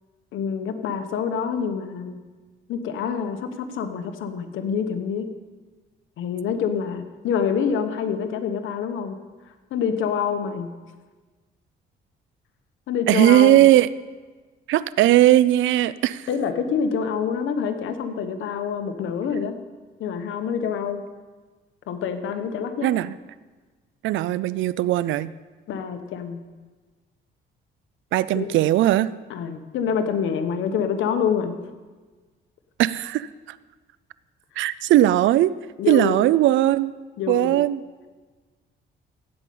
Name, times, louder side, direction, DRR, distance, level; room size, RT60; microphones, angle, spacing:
voice 1, 0.3-2.2 2.7-5.3 6.2-9.2 9.7-10.7 12.9-13.6 16.3-19.5 20.0-21.0 21.9-22.9 25.7-26.4 28.3-28.5 29.3-31.6 35.8-36.2 37.2-37.5, left 7 dB, 80° left, 8 dB, 1.2 m, -26 dB
voice 2, 13.1-13.9 14.7-16.3 22.8-23.1 24.0-25.3 28.1-29.1 32.8-33.6 34.6-35.5 35.9-36.9 37.3-37.8, right 14 dB, 75° right, 17 dB, 0.4 m, -18 dB
15.0 x 5.4 x 8.5 m, 1.3 s
cardioid pair, 90°, 20 cm